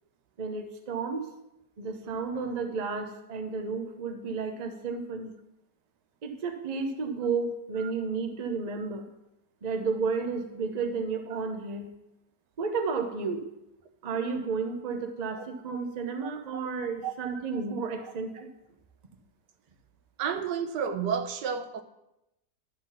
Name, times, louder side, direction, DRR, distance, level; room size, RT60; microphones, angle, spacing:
voice 1, 0.4-1.2 1.8-5.3 6.2-9.0 9.6-11.9 12.6-13.4 14.0-18.5, right 4 dB, 35° right, 0.6 m, -32 dB
voice 2, 17.0-17.4 20.2-21.8, right 7 dB, 90° right, 1.3 m, -31 dB
12.0 x 4.0 x 5.6 m
omnidirectional pair, 1.8 m